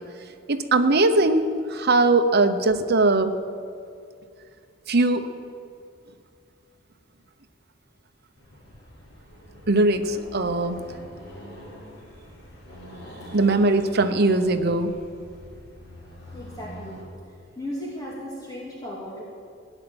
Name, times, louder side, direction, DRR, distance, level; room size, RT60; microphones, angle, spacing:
voice 1, 0.5-3.3 4.9-5.3 9.7-10.9 13.3-14.9, right 2 dB, 55° right, 8 dB, 0.9 m, -20 dB
Accelerating revving vroom, 8.4-17.1, equal, 70° left, 4.7 m, -44 dB
voice 2, 16.3-17.0 17.6-19.2, left 1 dB, 20° left, -5 dB, 2.4 m, -36 dB
16.0 x 10.0 x 8.0 m, 2.4 s
head